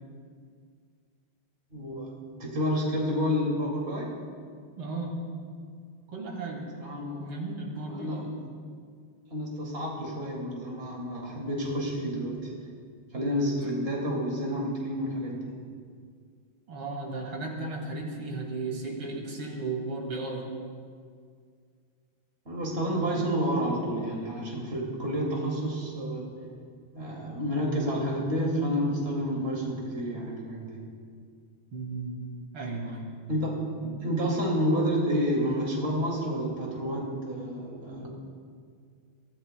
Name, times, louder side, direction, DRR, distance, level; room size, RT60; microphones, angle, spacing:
voice 1, 1.7-4.2 6.7-7.4 7.8-8.4 9.3-12.5 13.1-15.6 22.4-26.3 26.9-30.8 33.3-33.7 34.0-38.1, equal, 30° right, -2 dB, 2.6 m, -30 dB
voice 2, 4.8-5.2 6.1-6.7 7.2-8.2 16.7-20.5 22.9-23.2 31.7-32.2 32.5-33.1 33.8-33.9, right 3 dB, 90° right, -1 dB, 3.1 m, -35 dB
23.5 x 15.0 x 2.2 m, 2.1 s
omnidirectional pair, 2.3 m